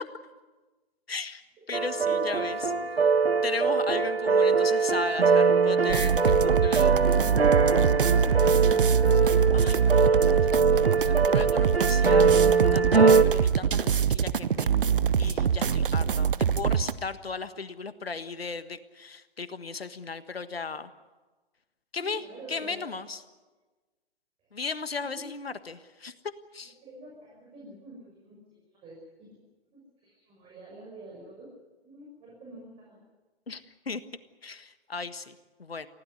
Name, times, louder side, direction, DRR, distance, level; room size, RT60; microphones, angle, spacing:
voice 1, 1.1-1.4 1.7-2.9 3.4-6.9 9.5-12.3 12.6-14.7 15.2-20.9 21.9-22.2 22.5-23.2 24.5-26.1 26.5-26.7 33.5-34.0 34.4-35.9, left 4 dB, 75° left, 13 dB, 1.5 m, -36 dB
sound 1, 1.7-13.2, right 4 dB, 80° right, 1.8 m, -22 dB
sound 2, 5.9-16.9, right 7 dB, 60° right, 1.0 m, -24 dB
voice 2, 6.9-8.9 22.0-22.8 25.0-25.2 26.8-28.4 28.8-29.3 29.7-31.5 31.8-33.0, right 1 dB, 20° right, -4 dB, 6.4 m, -46 dB
24.5 x 16.5 x 9.7 m, 1.3 s
figure-of-eight pair, 125°, 30 cm